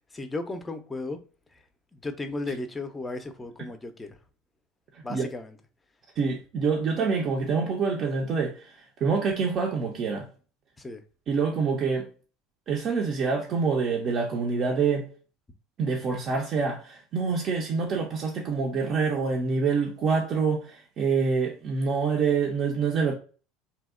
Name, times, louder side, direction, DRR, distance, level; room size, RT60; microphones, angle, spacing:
voice 1, 0.1-1.2 1.9-4.1 5.0-5.6 10.8-11.0, left 2 dB, 20° left, 0.4 m, -35 dB
voice 2, 4.9-5.2 6.2-8.7 9.0-10.3 11.3-12.1 12.7-15.1 15.8-23.1, right 5 dB, 50° right, 0.4 m, -26 dB
2.7 x 2.0 x 2.3 m
hypercardioid pair, 80°, 0 cm